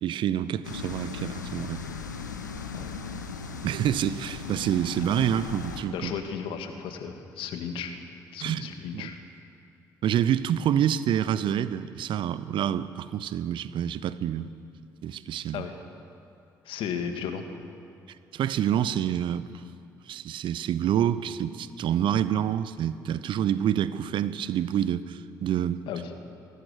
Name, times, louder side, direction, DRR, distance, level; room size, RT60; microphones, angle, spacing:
voice 1, 0.0-1.8 3.6-6.1 8.4-8.7 8.9-9.1 10.0-14.5 15.0-15.7 18.3-19.5 20.1-25.8, right 10 dB, 60° right, 15 dB, 0.9 m, -27 dB
sound 1, 0.6-5.8, left 5 dB, 90° left, 1.0 m, -37 dB
voice 2, 5.9-7.9 8.3-9.2 15.5-15.7 16.6-17.4 25.9-26.0, left 7 dB, 65° left, 6 dB, 2.1 m, -34 dB
24.0 x 18.5 x 6.8 m, 2.6 s
figure-of-eight pair, 45°, 10 cm